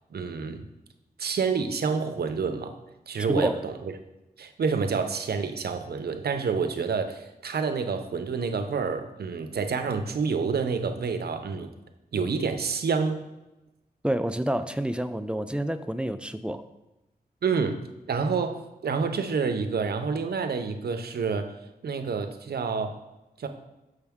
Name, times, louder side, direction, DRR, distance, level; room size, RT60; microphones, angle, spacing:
voice 1, 0.1-0.7 1.2-2.8 3.1-3.7 4.4-11.7 12.1-13.3 17.4-21.5 21.8-23.0 23.4-23.5, right 5 dB, 80° right, 7 dB, 0.6 m, -28 dB
voice 2, 3.2-3.6 14.0-16.7, right 1 dB, 5° right, 10 dB, 0.3 m, -28 dB
6.3 x 5.8 x 3.5 m, 0.98 s
wide cardioid pair, 80°, 16 cm